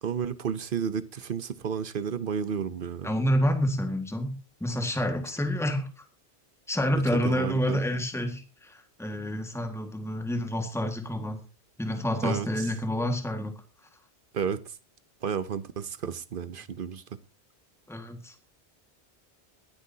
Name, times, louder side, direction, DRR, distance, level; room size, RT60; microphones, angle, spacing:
voice 1, 0.0-3.1 7.2-7.8 12.2-12.7 14.3-14.8 15.2-17.0, right 7 dB, 55° right, 0.9 m, -32 dB
voice 2, 3.0-6.0 6.7-11.4 11.8-13.5 17.9-18.3, equal, ahead, 1.7 m, -28 dB
22.5 x 10.0 x 2.8 m
omnidirectional pair, 1.1 m